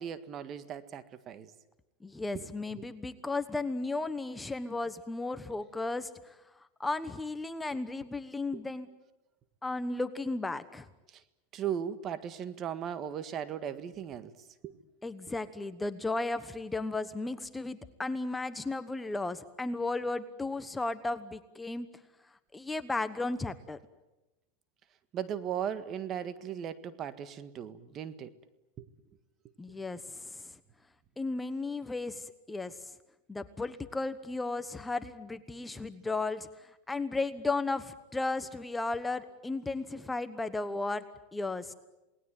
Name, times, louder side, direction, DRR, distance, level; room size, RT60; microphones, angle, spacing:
voice 1, 0.0-1.5 2.3-2.5 2.7-2.9 8.5-8.6 11.1-11.2 11.5-14.3 14.6-14.7 25.1-28.3 28.8-28.9, right 9 dB, 35° right, 12 dB, 1.7 m, -37 dB
voice 2, 2.0-6.4 6.8-8.9 9.6-10.9 15.0-21.9 22.5-23.8 29.6-30.6 31.2-32.9 33.3-41.0 41.3-41.7, left 3 dB, 10° left, 12 dB, 1.1 m, -35 dB
28.5 x 19.5 x 9.2 m, 0.99 s
supercardioid pair, 130°, 0 cm